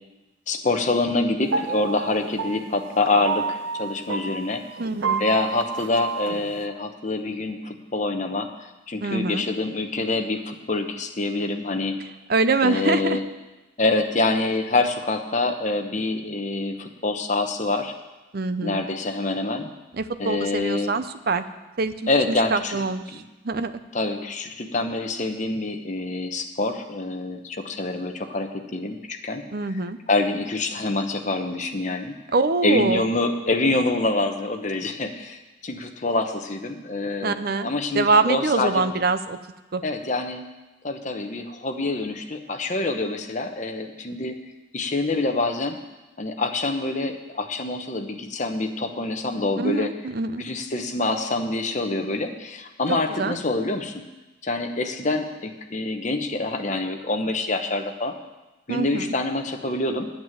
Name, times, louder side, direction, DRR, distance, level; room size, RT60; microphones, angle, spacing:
voice 1, 0.5-4.6 5.2-12.0 12.6-13.2 13.8-17.9 18.6-19.7 20.2-20.9 22.1-22.8 23.9-29.4 30.1-32.1 32.6-38.9 39.8-40.4 40.8-44.3 44.7-45.8 46.2-49.9 50.4-53.9 54.4-58.1 58.7-60.1, left 2 dB, 40° left, 5 dB, 1.0 m, -26 dB
sound 1, 1.4-6.6, right 5 dB, 85° right, 0.7 m, -30 dB
voice 2, 4.8-5.2 9.0-9.4 12.3-13.2 18.3-18.8 19.9-21.4 21.8-23.8 29.5-30.0 32.3-33.0 37.2-39.4 39.7-39.8 49.6-50.4 53.2-53.4 58.7-59.1, right 3 dB, 50° right, 11 dB, 0.6 m, -24 dB
9.3 x 7.7 x 9.2 m, 1.1 s
head